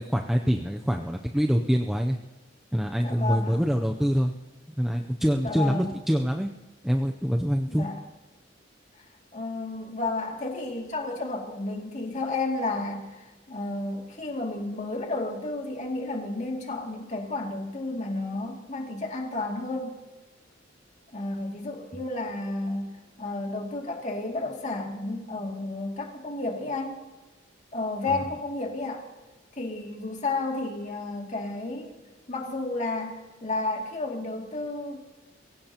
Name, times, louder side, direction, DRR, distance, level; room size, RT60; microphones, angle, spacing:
voice 1, 0.0-2.2 2.7-4.3 4.8-6.5 6.8-7.8 28.1-28.2, equal, ahead, 3 dB, 0.6 m, -25 dB
voice 2, 3.0-3.6 5.4-5.9 7.7-8.0 9.0-9.1 9.3-20.0 21.1-22.9 23.2-27.0 27.7-29.1 29.5-32.0 32.3-35.1, left 2 dB, 40° left, 1 dB, 2.5 m, -32 dB
23.5 x 16.0 x 2.9 m, 1.1 s
head